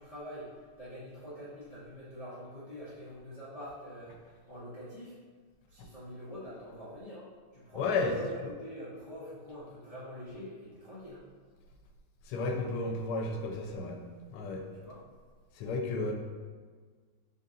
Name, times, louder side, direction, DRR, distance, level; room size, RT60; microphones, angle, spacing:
voice 1, 0.0-5.2 5.7-11.2 14.7-15.0, equal, 70° left, -11 dB, 0.3 m, -45 dB
voice 2, 7.7-8.1 12.3-14.0 14.3-14.6 15.6-16.1, left 3 dB, 85° left, 2 dB, 1.4 m, -32 dB
3.9 x 2.7 x 3.6 m, 1.5 s
omnidirectional pair, 2.3 m